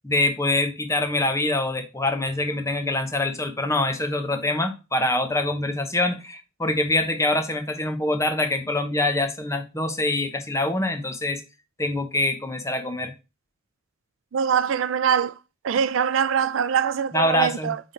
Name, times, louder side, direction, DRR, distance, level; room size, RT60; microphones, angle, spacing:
voice 1, 0.0-11.4 11.8-13.1 17.1-17.7, left 2 dB, 15° left, 0.8 m, -24 dB
voice 2, 14.3-15.3 15.6-17.8, right 7 dB, 70° right, 0.4 m, -23 dB
8.4 x 3.4 x 3.8 m
head